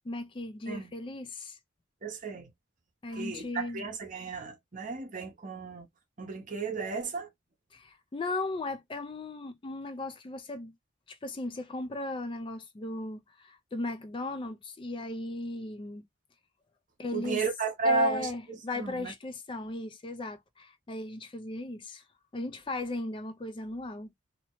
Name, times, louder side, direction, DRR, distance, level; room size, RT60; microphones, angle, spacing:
voice 1, 0.0-1.6 3.0-3.9 7.7-10.7 11.1-16.1 17.0-17.5 17.8-22.0 22.3-24.1, left 2 dB, 25° left, 0.4 m, -36 dB
voice 2, 2.0-2.5 3.1-5.9 6.2-7.3 17.1-19.1, right 4 dB, 40° right, 0.8 m, -33 dB
2.8 x 2.1 x 2.9 m
head